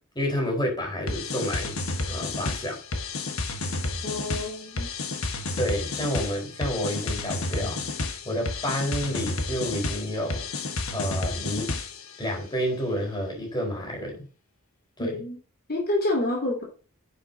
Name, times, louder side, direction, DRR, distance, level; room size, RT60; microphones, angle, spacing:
voice 1, 0.1-1.7 2.1-2.8 5.6-10.5 10.9-11.8 12.2-14.2 15.0-15.1, equal, 20° left, 4.3 m, -29 dB
sound 1, 1.1-12.1, left 3 dB, 75° left, 1.4 m, -31 dB
voice 2, 4.0-4.9 15.0-15.4 15.7-16.6, left 2 dB, 45° left, 2.7 m, -28 dB
10.0 x 7.9 x 2.8 m
head